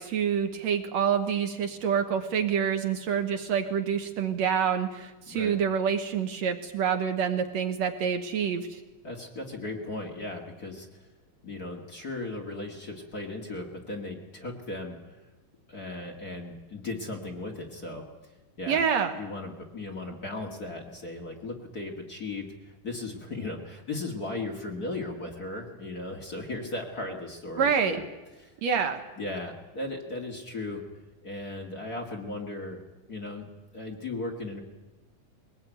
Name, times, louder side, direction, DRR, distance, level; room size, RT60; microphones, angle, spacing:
voice 1, 0.0-8.8 18.7-19.1 27.6-28.0 28.6-29.0, right 7 dB, 65° right, 6 dB, 2.3 m, -27 dB
voice 2, 5.2-5.5 9.0-11.0 11.4-15.0 15.7-18.1 18.6-18.8 19.2-28.1 28.4-28.5 29.2-30.8 31.2-32.8 33.1-33.5 33.7-34.6, left 2 dB, 30° left, 1 dB, 2.2 m, -37 dB
21.5 x 19.0 x 9.1 m, 1.1 s
omnidirectional pair, 3.7 m